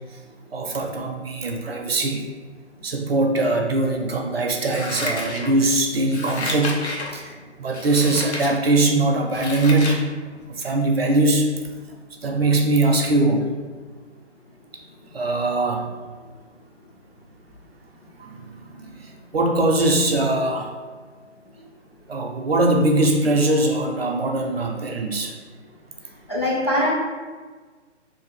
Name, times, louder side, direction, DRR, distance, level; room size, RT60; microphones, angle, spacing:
voice 1, 0.5-2.2 2.8-6.8 7.1-10.0 10.5-11.5 12.2-13.5 15.1-15.9 18.2-20.8 21.6-21.7 22.1-25.4, right 2 dB, 55° right, 2 dB, 0.5 m, -21 dB
Scissors, 4.6-5.7 6.1-7.1 7.7-8.5 9.0-10.0 10.4-10.5, left 2 dB, 65° left, 0.8 m, -31 dB
voice 2, 26.3-26.9, left 1 dB, 25° left, -6 dB, 0.4 m, -21 dB
2.7 x 2.6 x 4.0 m, 1.4 s
figure-of-eight pair, 140°, 36 cm